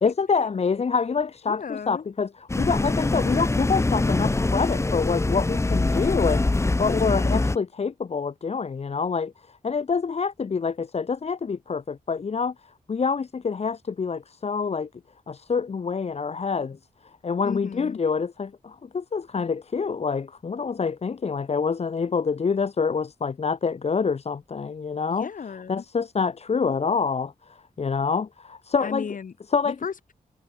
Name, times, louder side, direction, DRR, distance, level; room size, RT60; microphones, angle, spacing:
voice 1, 0.0-14.9 15.3-25.3 25.7-29.1 29.5-29.8, left 5 dB, 45° left, 1.1 m, -27 dB
voice 2, 1.5-2.0 6.8-7.4 17.4-18.0 25.1-25.8 28.8-29.3 29.6-30.1, left 6 dB, 60° left, 2.7 m, -35 dB
sound 1, 2.5-7.6, left 2 dB, 20° left, 1.2 m, -23 dB
wide cardioid pair, 150°, 15 cm